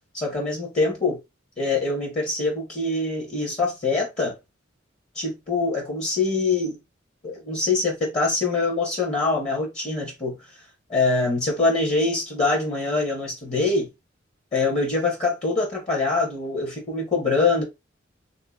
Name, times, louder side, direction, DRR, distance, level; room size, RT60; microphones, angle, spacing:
voice 1, 0.1-1.2 1.6-4.3 5.1-6.8 7.2-10.3 10.9-13.9 14.5-17.6, left 3 dB, 35° left, 0.9 m, -24 dB
3.6 x 2.6 x 2.3 m
head